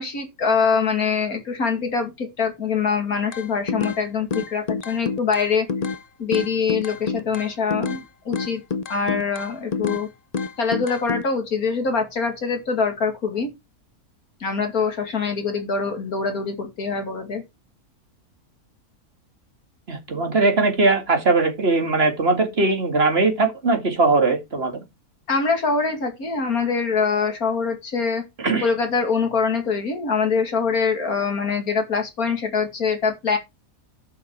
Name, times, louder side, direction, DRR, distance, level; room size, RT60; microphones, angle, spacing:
voice 1, 0.0-5.7 6.2-8.6 8.9-10.1 10.6-13.5 14.4-17.4 25.3-28.2 28.6-33.4, left 5 dB, 70° left, 2.8 m, -24 dB
sound 1, 3.3-4.0 4.3-6.0 6.3-8.0 8.3-10.0 10.3-11.2, left 5 dB, 45° left, 0.5 m, -27 dB
voice 2, 19.9-24.8 28.4-28.7, right 3 dB, 40° right, 2.4 m, -20 dB
11.0 x 6.2 x 4.7 m
omnidirectional pair, 1.6 m